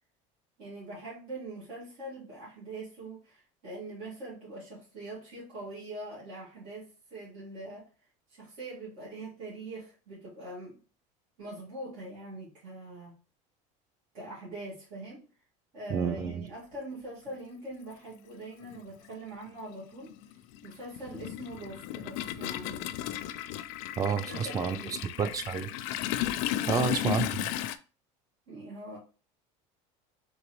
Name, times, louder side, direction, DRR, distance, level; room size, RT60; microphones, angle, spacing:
voice 1, 0.6-7.9 8.4-10.8 11.4-13.1 14.1-15.3 15.7-20.1 20.6-22.9 24.0-25.0 26.5-26.9 28.5-29.0, right 2 dB, 75° right, 2.1 m, -43 dB
voice 2, 15.9-16.4 24.0-24.8 25.2-25.7 26.7-27.4, right 6 dB, 20° right, 0.4 m, -29 dB
Toilet flush, 17.3-17.4 18.6-18.8 19.1-27.8, left 13 dB, 70° left, 0.4 m, -34 dB
3.9 x 3.5 x 3.0 m
cardioid pair, 140°, 17 cm